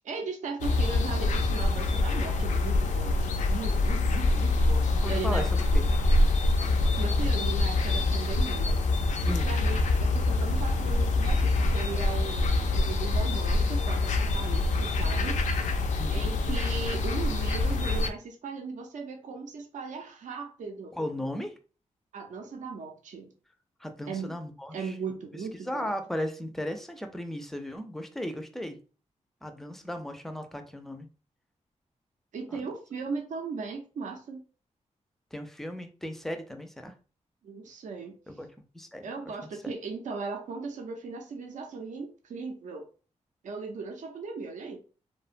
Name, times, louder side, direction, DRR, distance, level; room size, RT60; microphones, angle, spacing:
voice 1, 0.0-5.5 7.0-8.8 9.3-15.7 16.1-21.0 22.1-23.3 24.1-24.3 24.7-25.9 32.3-34.4 37.4-38.1 39.0-42.9 43.4-44.8, right 4 dB, 85° right, 3 dB, 0.5 m, -37 dB
sound 1, 0.6-18.1, left 2 dB, 80° left, 0.4 m, -25 dB
voice 2, 5.0-5.8 9.2-9.5 16.0-16.3 20.9-21.6 23.8-24.9 25.6-28.8 29.4-31.1 32.5-32.6 35.3-36.9 38.3-38.5 38.7-39.1, left 1 dB, 5° left, 6 dB, 0.3 m, -36 dB
2.8 x 2.1 x 2.4 m, 0.36 s
wide cardioid pair, 130°, 13 cm